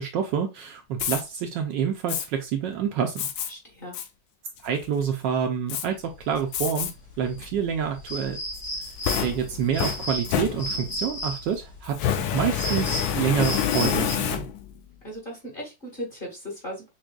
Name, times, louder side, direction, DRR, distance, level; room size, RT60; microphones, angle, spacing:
voice 1, 0.0-3.2 4.6-6.9 7.2-8.4 9.2-14.5, right 8 dB, 75° right, 4 dB, 1.1 m, -27 dB
Fire, 0.9-1.2 2.1-2.3 3.2-3.5 3.9-4.1 4.6-5.0 5.7-5.8 6.5-6.9 7.4-7.5 8.5-11.0 11.9-14.8, left 9 dB, 80° left, 1.3 m, -28 dB
voice 2, 3.5-4.0 15.0-16.9, equal, 30° left, -1 dB, 1.3 m, -37 dB
sound 1, 6.1-14.1, equal, 55° left, 2.1 m, -35 dB
6.0 x 2.5 x 2.3 m, 0.25 s
omnidirectional pair, 2.2 m